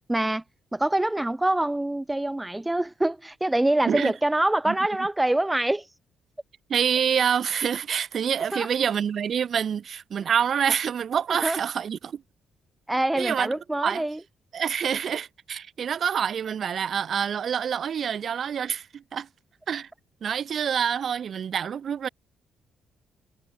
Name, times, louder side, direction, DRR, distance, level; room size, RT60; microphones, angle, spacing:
voice 1, 0.1-0.4 0.7-5.9 8.5-8.7 11.4-11.6 12.9-14.2, right 1 dB, 10° right, 0.4 m, -25 dB
voice 2, 6.7-12.2 13.2-13.5 13.8-14.0 14.5-19.3 19.7-19.9 20.2-22.1, right 8 dB, 55° right, 0.8 m, -26 dB
cardioid pair, 90°, 0 cm